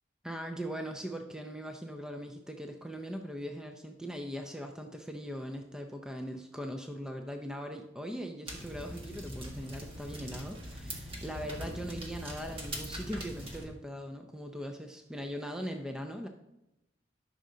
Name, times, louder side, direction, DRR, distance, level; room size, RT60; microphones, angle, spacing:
voice 1, 0.2-16.3, equal, 5° right, 4 dB, 0.5 m, -40 dB
sound 1, 8.5-13.7, equal, 30° right, 1.4 m, -42 dB
13.0 x 6.2 x 2.7 m, 0.89 s
head